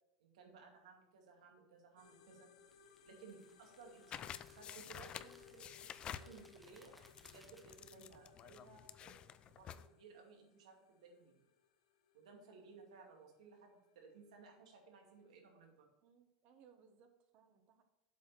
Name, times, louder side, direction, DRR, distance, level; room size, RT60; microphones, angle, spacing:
voice 1, 0.2-2.5 3.0-11.5 12.1-15.8, right 5 dB, 90° right, 1 dB, 2.3 m, -59 dB
sound 1, 2.0-15.7, left 8 dB, 80° left, 0.8 m, -66 dB
sound 2, 2.7-8.2, equal, ahead, 0.9 m, -67 dB
sound 3, 4.1-9.9, left 9 dB, 30° left, 0.4 m, -51 dB
voice 2, 16.0-17.8, right 7 dB, 45° right, 6 dB, 1.3 m, -66 dB
8.0 x 4.9 x 6.2 m, 0.85 s
supercardioid pair, 140°, 3 cm